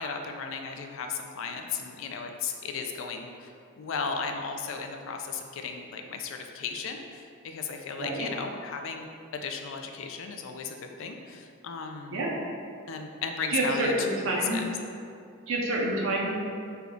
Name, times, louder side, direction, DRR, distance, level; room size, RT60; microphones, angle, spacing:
voice 1, 0.0-12.3 12.9-14.1 14.3-14.7, left 5 dB, 60° left, 4 dB, 0.3 m, -35 dB
voice 2, 13.5-14.6 15.5-16.4, right 1 dB, 65° right, -3 dB, 0.5 m, -27 dB
3.4 x 2.3 x 3.8 m, 2.5 s
head